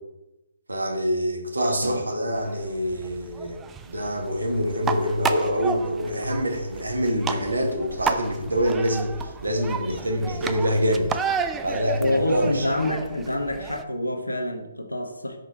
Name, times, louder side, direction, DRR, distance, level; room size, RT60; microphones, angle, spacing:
voice 1, 0.7-3.6 3.9-11.1 11.6-12.7, equal, 70° right, 2 dB, 1.3 m, -25 dB
sound 1, 2.3-13.8, right 5 dB, 10° right, 0.3 m, -33 dB
voice 2, 12.0-15.4, left 1 dB, 80° left, 4 dB, 0.9 m, -27 dB
5.5 x 5.1 x 3.5 m, 0.98 s
figure-of-eight pair, 135°, 0 cm